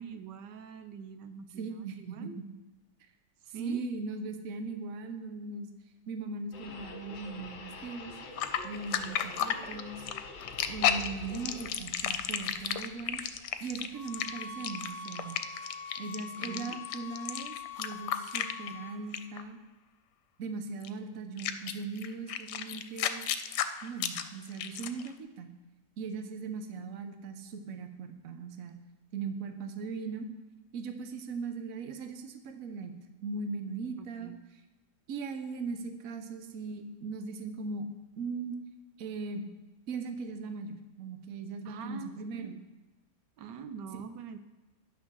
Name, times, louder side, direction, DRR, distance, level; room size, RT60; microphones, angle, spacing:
voice 1, 0.0-2.4 3.4-3.8 16.3-16.8 34.0-34.4 41.6-42.6 43.4-44.4, right 6 dB, 85° right, 9 dB, 1.3 m, -44 dB
voice 2, 1.6-2.4 3.5-5.7 6.1-8.1 8.6-10.1 10.7-13.2 13.6-15.4 16.0-19.6 20.4-23.2 23.8-25.5 26.0-28.8 29.1-30.3 30.7-33.0 33.2-34.3 35.1-37.9 38.2-38.6 39.0-39.5 39.9-42.5 43.9-44.0, right 4 dB, 60° right, 7 dB, 1.2 m, -39 dB
sound 1, 6.5-11.7, left 4 dB, 55° left, 1.4 m, -46 dB
sound 2, 8.4-18.9 19.1-19.4 20.8-20.9 21.4-25.1, left 9 dB, 80° left, 1.2 m, -33 dB
sound 3, 13.9-19.0, left 6 dB, 15° left, 0.8 m, -44 dB
9.8 x 6.1 x 6.2 m, 1.1 s
omnidirectional pair, 1.8 m